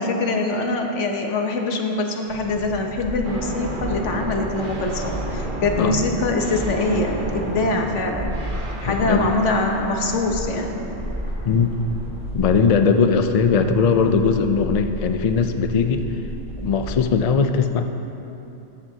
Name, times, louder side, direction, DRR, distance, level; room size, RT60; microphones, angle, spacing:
voice 1, 0.0-10.9 11.4-11.5 12.6-12.8, left 2 dB, 75° left, 3 dB, 1.3 m, -24 dB
sound 1, 2.3-17.3, equal, 5° right, 1.2 m, -33 dB
sound 2, 3.2-12.3, right 1 dB, 45° right, 1.2 m, -33 dB
voice 2, 8.8-9.3 11.5-11.8 12.3-16.1 16.6-17.9, left 5 dB, 55° left, 7 dB, 0.4 m, -19 dB
14.5 x 10.5 x 2.8 m, 2.9 s
omnidirectional pair, 1.3 m